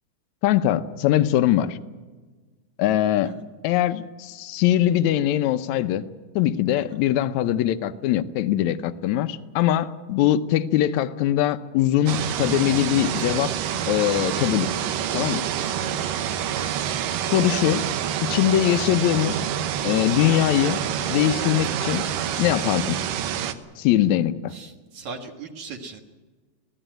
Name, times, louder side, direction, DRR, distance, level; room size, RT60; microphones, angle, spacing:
voice 1, 0.4-1.8 2.8-3.4 3.6-6.0 6.4-13.5 13.9-14.7 15.1-15.5 17.3-17.8 18.2-19.4 19.8-20.8 21.1-22.1 22.4-23.0 23.8-24.6, left 12 dB, 75° left, 11 dB, 1.7 m, -22 dB
sound 1, 12.1-23.5, right 9 dB, 75° right, 2.6 m, -27 dB
voice 2, 16.3-16.6 17.5-17.6 24.5-26.0, right 4 dB, 60° right, 4 dB, 2.6 m, -39 dB
23.0 x 16.0 x 9.1 m, 1.3 s
omnidirectional pair, 4.1 m